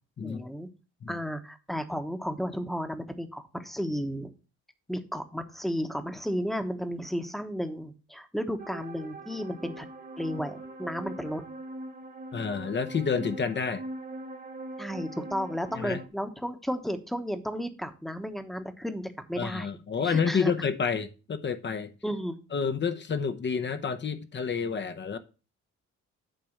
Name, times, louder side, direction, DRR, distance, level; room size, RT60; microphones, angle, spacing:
voice 1, 0.2-0.7 1.1-4.3 4.9-9.8 10.2-11.4 14.8-19.7 20.0-20.5 22.0-22.4, equal, ahead, 1.0 m, -33 dB
sound 1, 8.6-16.1, right 2 dB, 30° right, 1.5 m, -41 dB
voice 2, 12.3-13.8 15.8-16.0 19.4-21.9 22.5-25.2, left 6 dB, 35° left, 0.8 m, -29 dB
8.9 x 3.4 x 6.5 m
cardioid pair, 90°, 30 cm